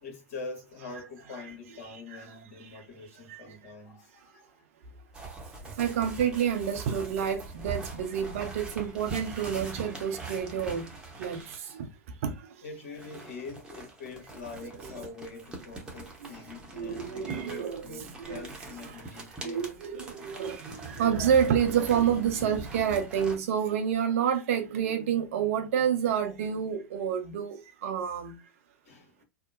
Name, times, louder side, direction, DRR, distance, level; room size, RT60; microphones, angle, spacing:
voice 1, 0.0-4.5 5.1-5.4 5.6-5.8 12.6-19.6 28.8-29.2, left 4 dB, 60° left, 1.2 m, -44 dB
sound 1, 5.1-11.7 12.9-23.4, right 3 dB, 10° right, 0.8 m, -42 dB
voice 2, 5.8-10.9 11.2-11.9 12.2-12.3 14.8-15.1 16.8-18.5 18.8-18.9 19.4-28.4, right 8 dB, 60° right, 0.6 m, -29 dB
2.7 x 2.0 x 2.5 m
figure-of-eight pair, 95°, 9 cm